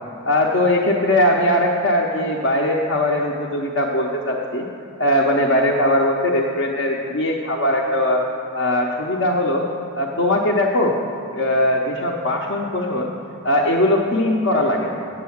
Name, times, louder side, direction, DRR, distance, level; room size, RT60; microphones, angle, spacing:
voice 1, 0.2-4.7 5.0-8.2 8.5-9.6 10.0-11.0 11.3-13.1 13.4-15.0, left 1 dB, 60° left, -2 dB, 0.7 m, -20 dB
8.4 x 6.8 x 7.1 m, 2.7 s
head